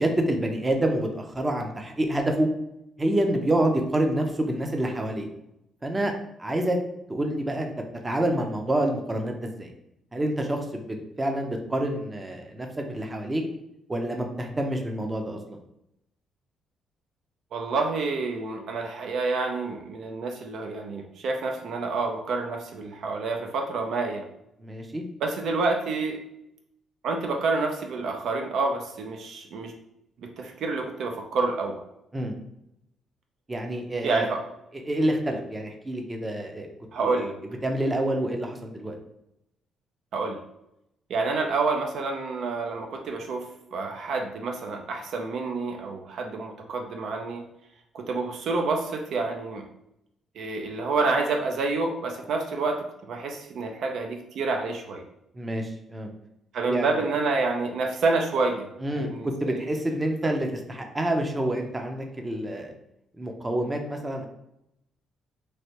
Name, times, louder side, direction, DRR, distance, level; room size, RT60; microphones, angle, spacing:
voice 1, 0.0-2.5 3.0-5.3 5.8-6.1 6.4-6.8 7.1-7.7 8.0-9.7 10.1-13.4 13.9-15.6 24.6-25.0 32.1-32.4 33.5-34.3 34.7-36.7 37.0-37.3 37.6-38.9 55.3-56.1 56.7-56.9 58.8-62.7 63.2-64.3, right 1 dB, 20° right, 3 dB, 0.5 m, -27 dB
voice 2, 17.5-24.2 25.2-26.2 27.0-29.7 30.2-31.8 34.0-34.4 36.9-37.3 40.1-40.4 41.1-47.4 47.9-49.7 50.4-55.0 56.5-59.6, right 3 dB, 70° right, 3 dB, 0.4 m, -28 dB
3.2 x 2.6 x 2.8 m, 0.82 s
cardioid pair, 90°, 0 cm